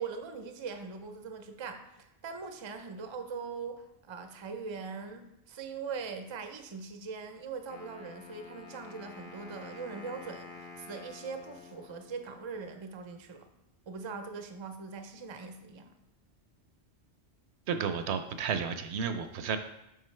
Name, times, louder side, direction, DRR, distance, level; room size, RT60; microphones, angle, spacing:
voice 1, 0.0-13.5 13.9-15.9, right 5 dB, 40° right, 6 dB, 0.4 m, -41 dB
Wind instrument woodwind instrument, 7.7-12.6, left 4 dB, 50° left, 0.9 m, -49 dB
voice 2, 17.7-19.6, right 6 dB, 70° right, 8 dB, 0.8 m, -32 dB
7.5 x 5.0 x 3.2 m, 0.87 s
omnidirectional pair, 1.2 m